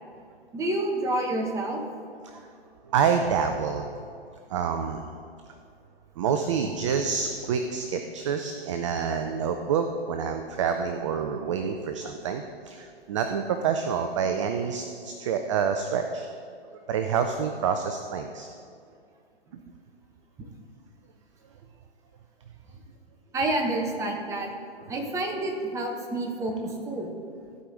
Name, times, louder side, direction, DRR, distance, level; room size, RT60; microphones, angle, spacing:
voice 1, 0.5-1.8 23.3-24.5 24.9-27.1, right 1 dB, 10° right, 1 dB, 0.9 m, -28 dB
voice 2, 2.9-3.9 4.5-5.1 6.2-16.3 16.7-18.5 19.5-19.6, right 6 dB, 30° right, 6 dB, 0.4 m, -27 dB
14.5 x 5.0 x 3.8 m, 2.4 s
hypercardioid pair, 130°, 31 cm